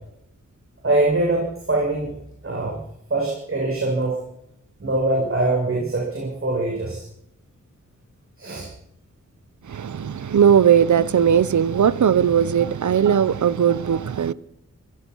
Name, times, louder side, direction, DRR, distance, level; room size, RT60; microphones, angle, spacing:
voice 1, 0.8-2.1 2.4-2.8 3.1-4.2 4.8-7.0 8.4-8.7, right 2 dB, 45° right, 7.7 m, -23 dB
voice 2, 9.7-14.3, right 8 dB, 70° right, 1.0 m, -18 dB
25.5 x 18.0 x 5.7 m
wide cardioid pair, 95°, 30 cm